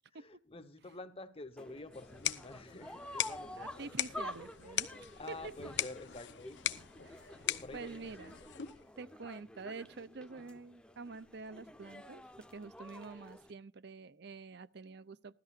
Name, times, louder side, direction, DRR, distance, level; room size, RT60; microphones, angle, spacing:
voice 1, 0.2-3.9 4.7-4.8 5.2-6.8 7.4-8.1, left 2 dB, 35° left, 1.2 m, -49 dB
sound 1, 1.6-13.5, left 1 dB, 5° left, 0.8 m, -50 dB
sound 2, 1.9-8.9, left 10 dB, 80° left, 0.9 m, -40 dB
voice 2, 3.5-4.9 5.3-5.4 7.0-7.4 7.7-8.4 9.0-12.2 12.5-15.4, right 4 dB, 65° right, 0.7 m, -47 dB
17.5 x 13.5 x 2.5 m
head